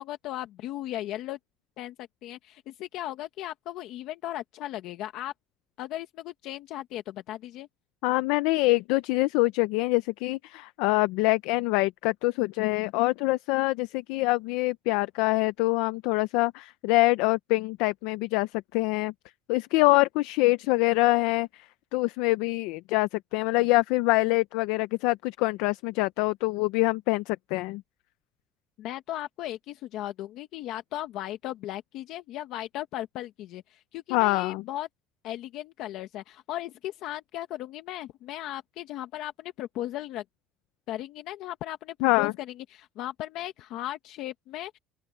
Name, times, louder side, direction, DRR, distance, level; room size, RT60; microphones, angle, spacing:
voice 1, 0.0-1.4 1.8-5.3 5.8-7.7 28.8-34.9 35.2-40.2 40.9-44.8, left 14 dB, 55° left, 1.2 m, -37 dB
voice 2, 8.0-19.1 19.5-21.5 21.9-27.8 34.1-34.6 42.0-42.3, left 22 dB, 85° left, 0.5 m, -25 dB
open air
cardioid pair, 175°, 0 cm